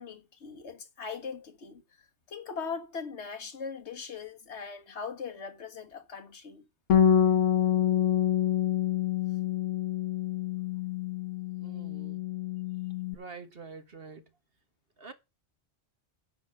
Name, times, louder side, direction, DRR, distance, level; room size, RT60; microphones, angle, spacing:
voice 1, 0.0-1.8 2.3-6.6, left 5 dB, 65° left, 1.6 m, -40 dB
Bass guitar, 6.9-13.1, left 10 dB, 85° left, 1.2 m, -27 dB
voice 2, 11.6-12.2 13.1-14.2 15.0-15.1, right 4 dB, 55° right, 1.6 m, -46 dB
10.0 x 5.8 x 6.8 m
omnidirectional pair, 1.2 m